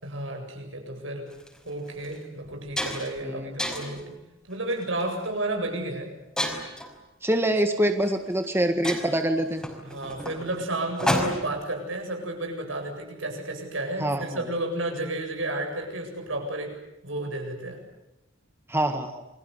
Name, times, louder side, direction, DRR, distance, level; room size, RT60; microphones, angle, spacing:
voice 1, 0.0-1.3 1.6-4.1 4.5-6.1 9.8-16.8 17.0-17.8, right 1 dB, 75° right, 4 dB, 8.0 m, -32 dB
sound 1, 1.3-1.5 2.0-2.2 2.5-3.2 3.6-4.0 4.7-5.0 6.4-6.9 8.0-8.1 8.4-8.5 8.8-11.6, equal, 5° left, 5.2 m, -30 dB
voice 2, 3.2-3.6 7.2-9.6 14.0-14.2 18.7-19.2, right 1 dB, 10° right, 6 dB, 1.6 m, -25 dB
29.0 x 24.0 x 8.1 m, 0.90 s
head